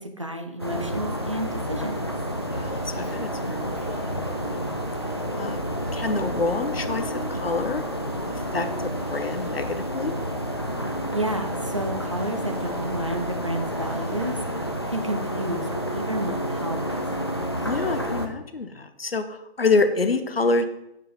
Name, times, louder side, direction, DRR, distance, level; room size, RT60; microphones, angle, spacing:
voice 1, 0.0-2.1 11.1-14.4 14.9-17.4, right 1 dB, 30° right, 6 dB, 0.6 m, -31 dB
sound 1, 0.6-18.3, equal, 25° left, 0.6 m, -30 dB
sound 2, 2.1-14.9, left 1 dB, ahead, 0.9 m, -47 dB
voice 2, 2.4-4.4 5.4-5.6 5.9-7.8 8.5-10.1 17.6-19.2 19.6-20.6, left 3 dB, 70° left, 9 dB, 1.1 m, -27 dB
Motor vehicle (road) / Engine, 3.0-9.5, right 1 dB, 15° right, 1.7 m, -42 dB
9.7 x 5.7 x 5.6 m, 0.87 s
figure-of-eight pair, 170°, 31 cm